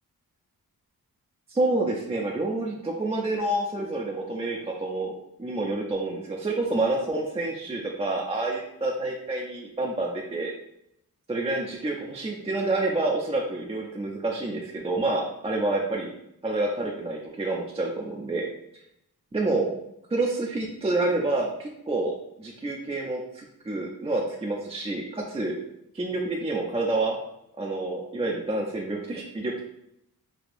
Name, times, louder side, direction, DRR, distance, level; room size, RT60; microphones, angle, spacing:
voice 1, 1.5-10.5 11.3-16.1 16.4-18.4 19.3-19.7 20.1-25.5 25.9-27.2 27.6-29.6, right 2 dB, 20° right, -1 dB, 0.3 m, -28 dB
3.3 x 2.7 x 2.5 m, 0.78 s
wide cardioid pair, 95°, 37 cm